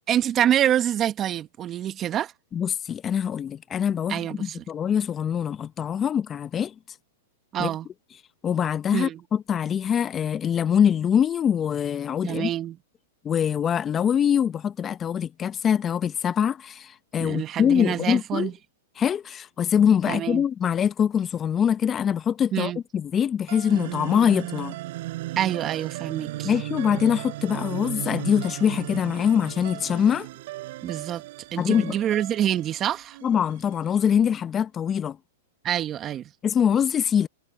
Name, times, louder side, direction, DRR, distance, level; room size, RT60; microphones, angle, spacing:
voice 1, 0.1-2.3 4.1-4.6 7.5-7.9 8.9-9.2 12.2-12.8 17.2-18.5 20.1-20.4 22.5-22.8 25.3-26.5 30.8-31.2 31.5-33.2 35.6-36.3, right 11 dB, 30° right, 1.6 m, -26 dB
voice 2, 2.5-6.7 7.6-7.7 8.4-12.5 13.2-18.5 19.0-24.8 26.4-30.3 31.6-31.9 33.2-35.2 36.4-37.3, left 8 dB, 25° left, 1.1 m, -23 dB
sound 1, 23.5-33.8, right 17 dB, 60° right, 5.7 m, -36 dB
hypercardioid pair, 125°, 0 cm